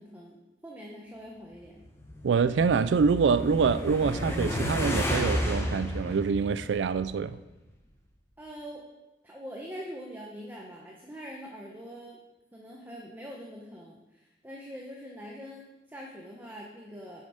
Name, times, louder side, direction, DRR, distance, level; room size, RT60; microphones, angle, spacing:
voice 1, 0.0-1.8 8.4-8.9 9.2-12.2 12.5-17.2, equal, 10° right, 1.0 m, -43 dB
sound 1, 1.8-7.3, equal, 15° left, 1.2 m, -32 dB
voice 2, 2.2-7.4, right 5 dB, 85° right, 0.4 m, -25 dB
9.8 x 6.2 x 5.1 m
head